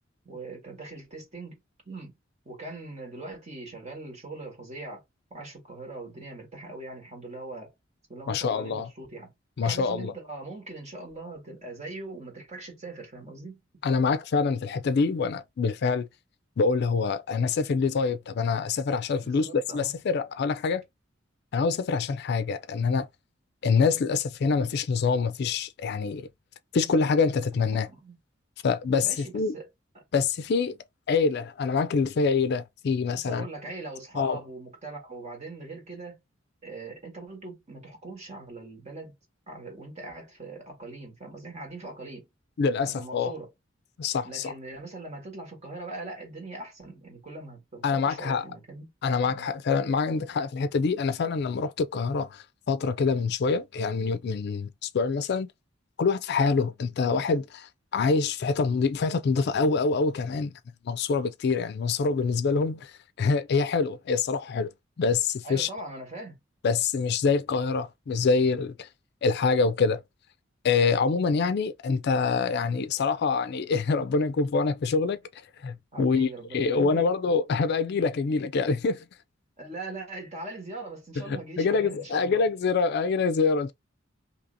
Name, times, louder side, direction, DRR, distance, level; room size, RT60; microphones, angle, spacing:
voice 1, 0.2-1.6 1.8-2.1 2.4-5.0 5.3-7.7 8.1-9.3 9.6-13.6 19.2-19.9 27.7-28.2 29.0-29.7 29.9-30.0 33.1-36.2 36.6-39.1 39.5-42.3 42.8-43.5 44.2-48.9 49.2-49.5 65.4-66.4 75.9-77.0 79.6-82.5, right 2 dB, 35° right, 1.6 m, -41 dB
voice 2, 8.3-8.9 9.6-10.1 13.8-16.1 16.6-20.8 21.5-23.1 23.6-26.3 26.7-27.9 28.6-29.5 30.1-30.8 31.1-33.5 34.2-34.4 42.6-43.3 44.0-44.5 47.8-48.4 49.0-55.5 56.0-60.5 60.8-64.7 65.0-65.7 66.6-68.9 69.2-70.0 70.6-75.2 75.6-79.0 81.3-83.7, left 4 dB, 55° left, 0.4 m, -25 dB
2.8 x 2.8 x 3.8 m
head